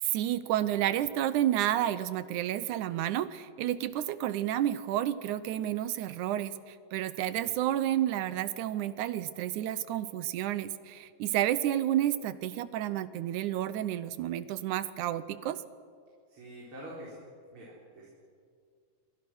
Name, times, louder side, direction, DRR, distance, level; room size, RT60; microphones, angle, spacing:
voice 1, 0.0-15.6, right 12 dB, 75° right, 14 dB, 1.9 m, -30 dB
voice 2, 16.3-17.3 17.5-18.1, right 1 dB, 35° right, -5 dB, 4.8 m, -46 dB
26.5 x 25.0 x 6.2 m, 2.2 s
omnidirectional pair, 4.1 m